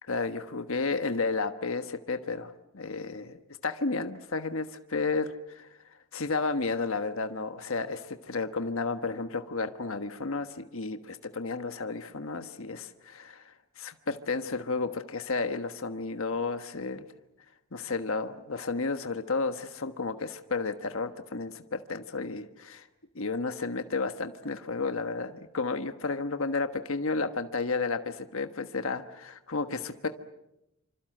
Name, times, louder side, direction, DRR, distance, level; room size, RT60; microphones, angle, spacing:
voice 1, 0.1-5.7 6.1-13.4 13.8-17.1 17.7-22.9 23.1-30.1, left 3 dB, 65° left, 8 dB, 1.3 m, -32 dB
26.5 x 26.0 x 7.8 m, 0.88 s
head